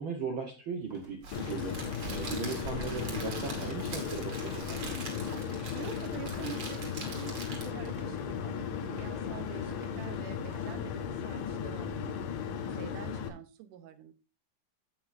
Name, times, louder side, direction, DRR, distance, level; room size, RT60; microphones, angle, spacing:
voice 1, 0.0-4.9, right 5 dB, 60° right, 2 dB, 1.3 m, -38 dB
sound 1, 0.7-11.2, equal, 20° right, 1.2 m, -56 dB
Crackle, 1.2-8.0, right 2 dB, 45° right, 3.1 m, -42 dB
sound 2, 1.3-13.3, left 7 dB, 85° left, 2.6 m, -36 dB
voice 2, 5.7-12.2 12.6-14.1, right 11 dB, 80° right, 10 dB, 2.3 m, -46 dB
16.5 x 5.8 x 2.6 m, 0.29 s
omnidirectional pair, 3.7 m